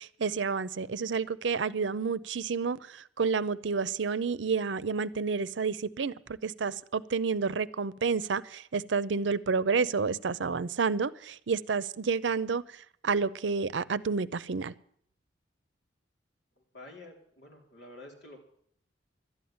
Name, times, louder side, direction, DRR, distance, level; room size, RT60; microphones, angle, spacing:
voice 1, 0.0-12.6 13.0-14.7, right 5 dB, 85° right, 0.6 m, -30 dB
voice 2, 16.7-18.4, left 2 dB, 70° left, 4.0 m, -49 dB
12.5 x 9.6 x 9.4 m
head